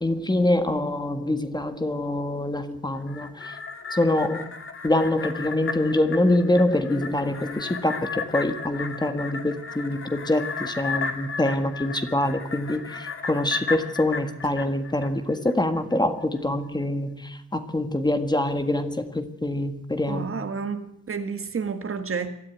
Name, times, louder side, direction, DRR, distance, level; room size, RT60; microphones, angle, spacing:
voice 1, 0.0-3.6 3.9-4.5 4.8-20.3, left 1 dB, 15° left, 8 dB, 1.6 m, -25 dB
sound 1, 3.0-15.5 15.9-16.0, left 5 dB, 50° left, 2.3 m, -34 dB
voice 2, 20.1-22.3, right 5 dB, 45° right, 8 dB, 1.9 m, -30 dB
23.5 x 14.0 x 9.2 m, 0.78 s
wide cardioid pair, 155°, 29 cm